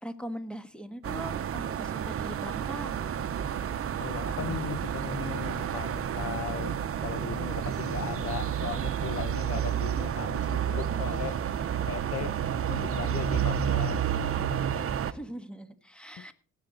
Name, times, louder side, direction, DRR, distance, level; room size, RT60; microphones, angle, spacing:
voice 1, 0.0-2.9 15.1-16.3, right 1 dB, 5° left, 1.4 m, -41 dB
sound 1, 1.0-15.1, right 9 dB, 50° right, 0.9 m, -30 dB
voice 2, 4.0-11.4 11.9-12.3 12.7-14.0 16.2-16.3, left 9 dB, 50° left, 0.8 m, -37 dB
18.5 x 8.1 x 3.9 m
cardioid pair, 90°, 30 cm